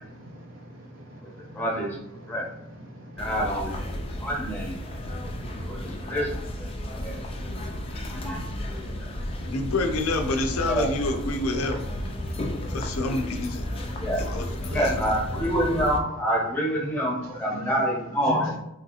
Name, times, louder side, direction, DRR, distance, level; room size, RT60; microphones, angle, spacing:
voice 1, 0.0-1.6 2.2-2.3 2.7-3.3 4.1-4.2 4.8-6.1 6.7-9.5 11.6-11.7 12.0-14.1 14.7-14.8 17.4-17.7 18.3-18.6, equal, 60° right, 0 dB, 0.7 m, -43 dB
voice 2, 1.5-2.0 2.2-2.4 3.2-4.8 5.7-6.3 6.6-7.2 7.9-8.4 8.8-9.1 10.3-10.9 14.0-14.2 14.6-18.5, equal, 10° left, -4 dB, 0.7 m, -27 dB
sound 1, 3.2-16.0, left 1 dB, 25° left, 0.3 m, -33 dB
voice 3, 9.5-11.8 12.7-13.7 14.2-14.5 14.8-15.0, left 2 dB, 90° left, 4 dB, 0.5 m, -27 dB
3.2 x 2.7 x 2.4 m, 0.83 s
head